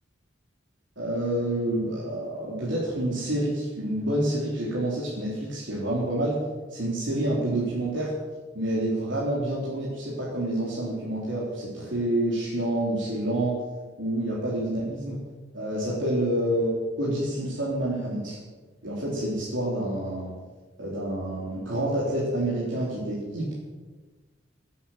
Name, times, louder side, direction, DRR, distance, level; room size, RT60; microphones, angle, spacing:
voice 1, 1.0-6.4 6.7-8.1 8.5-13.6 14.0-15.2 15.5-18.4 18.8-20.3 20.8-23.5, right 1 dB, 70° right, -7 dB, 4.0 m, -28 dB
17.5 x 8.7 x 7.6 m, 1.3 s
head